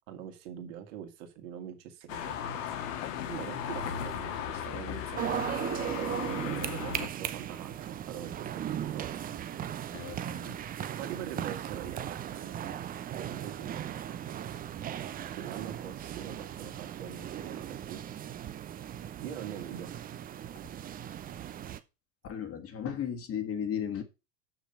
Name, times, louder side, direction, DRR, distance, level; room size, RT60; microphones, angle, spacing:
voice 1, 0.1-2.8 3.3-5.5 6.0-9.1 11.0-12.8 13.2-13.7 15.3-18.0 19.2-19.9, right 9 dB, 50° right, 2.4 m, -43 dB
sound 1, 2.1-7.1, left 8 dB, 55° left, 1.6 m, -36 dB
sound 2, 5.2-21.8, right 10 dB, 20° right, 0.6 m, -37 dB
voice 2, 9.9-10.6 21.1-21.2 22.2-24.0, left 8 dB, 30° left, 1.7 m, -35 dB
8.2 x 6.2 x 5.4 m
figure-of-eight pair, 90°, 47 cm